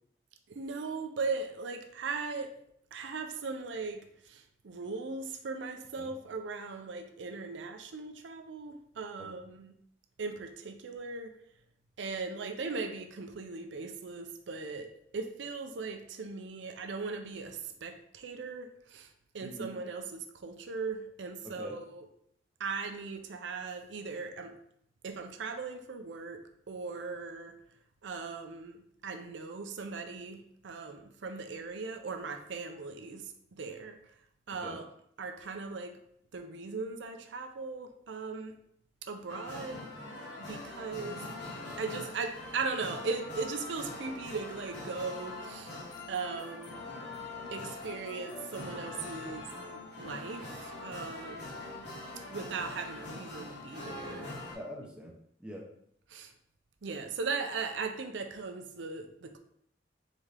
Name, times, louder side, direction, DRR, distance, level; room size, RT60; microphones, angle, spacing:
voice 1, 0.5-2.5 2.9-4.0 4.3-4.4 4.6-9.7 10.2-11.3 12.0-14.9 15.1-19.1 19.3-22.1 22.6-24.5 25.0-26.4 26.7-27.5 28.0-33.2 33.6-34.0 34.5-34.9 35.2-36.0 36.3-38.5 39.1-39.8 40.4-41.2 41.8-45.7 46.1-46.7 47.5-49.5 50.0-50.4 50.8-51.5 52.3-54.3 56.1-56.3 56.8-59.4, right 4 dB, 90° right, 6 dB, 0.5 m, -38 dB
voice 2, 19.4-19.7 21.4-21.8 34.5-34.8 51.3-51.4 54.5-55.7, equal, 5° right, -2 dB, 0.7 m, -45 dB
sound 1, 39.3-54.5, left 2 dB, 75° left, 1.8 m, -43 dB
4.1 x 3.6 x 3.3 m, 0.70 s
head